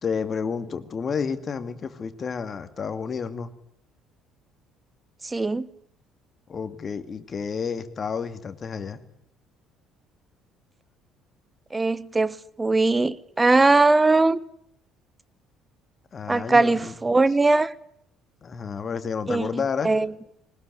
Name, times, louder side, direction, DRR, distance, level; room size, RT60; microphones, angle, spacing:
voice 1, 0.0-3.5 6.5-9.0 16.1-16.9 18.4-19.9, left 6 dB, 40° left, 2.5 m, -30 dB
voice 2, 5.2-5.7 11.7-14.4 16.3-17.7 19.3-20.1, right 3 dB, 20° right, 1.3 m, -20 dB
21.0 x 20.0 x 9.7 m
hypercardioid pair, 55°, 0 cm